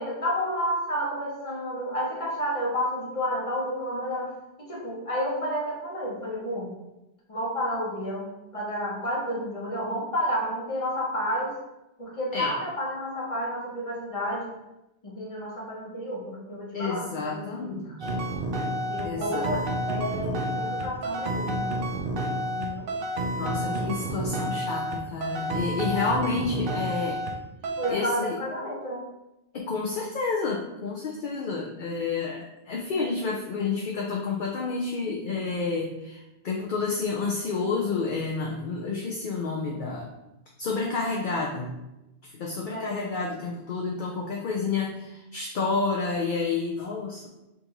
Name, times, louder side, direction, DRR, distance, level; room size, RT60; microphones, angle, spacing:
voice 1, 0.0-6.7 7.3-11.6 12.0-14.6 15.0-18.0 18.9-21.6 22.5-22.9 27.6-29.1 42.7-43.0, equal, 30° left, -3 dB, 1.0 m, -31 dB
voice 2, 16.7-18.2 19.0-19.5 23.4-27.2 27.9-28.4 29.5-40.1 40.6-41.7 42.2-47.3, left 4 dB, 55° left, -2 dB, 0.6 m, -30 dB
sound 1, 18.0-27.4 27.6-27.9, right 1 dB, 60° right, 0.6 m, -30 dB
6.0 x 2.6 x 2.9 m, 0.94 s
omnidirectional pair, 1.2 m